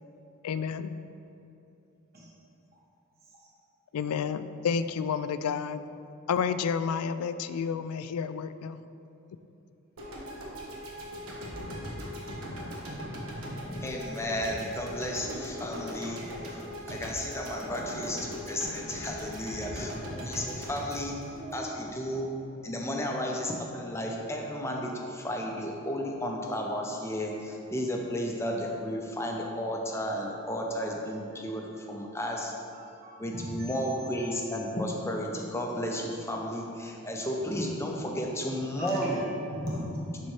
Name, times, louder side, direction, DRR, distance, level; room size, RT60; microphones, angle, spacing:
voice 1, 0.4-0.9 3.9-5.8 6.3-8.8, left 6 dB, 85° left, 12 dB, 0.3 m, -30 dB
sound 1, 10.0-22.2, equal, 75° right, 1.3 m, -39 dB
voice 2, 13.7-21.2 21.5-22.3 22.6-32.5 33.2-39.3 40.2-40.3, equal, 10° left, 0 dB, 0.6 m, -33 dB
voice 3, 19.6-20.2 21.3-21.7 32.8-33.7 38.8-40.2, equal, 45° right, -7 dB, 1.4 m, -39 dB
11.5 x 4.2 x 3.2 m, 2.8 s
head